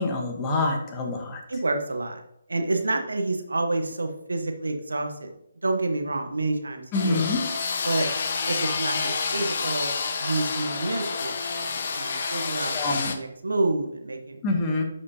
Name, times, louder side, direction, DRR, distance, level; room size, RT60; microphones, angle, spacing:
voice 1, 0.0-1.4 6.9-7.4 12.7-13.1 14.4-14.8, left 2 dB, 20° left, 1 dB, 1.3 m, -26 dB
voice 2, 1.5-2.2 2.5-5.3 5.6-7.3 7.8-8.1 8.5-11.7 12.0-14.4, right 2 dB, 70° right, 5 dB, 1.1 m, -28 dB
sound 1, 6.9-13.1, left 5 dB, 45° left, 0.7 m, -29 dB
11.0 x 5.0 x 2.9 m, 0.80 s
figure-of-eight pair, 140°, 0 cm